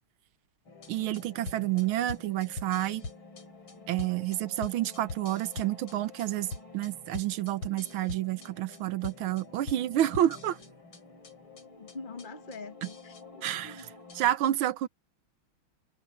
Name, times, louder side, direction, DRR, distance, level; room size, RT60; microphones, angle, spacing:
sound 1, 0.7-14.4, left 3 dB, 70° left, 4.7 m, -45 dB
voice 1, 0.9-3.0 3.9-6.5 6.7-10.6 13.4-14.9, right 13 dB, 80° right, 1.6 m, -29 dB
voice 2, 11.8-13.9, left 3 dB, 30° left, 0.9 m, -44 dB
omnidirectional pair, 2.3 m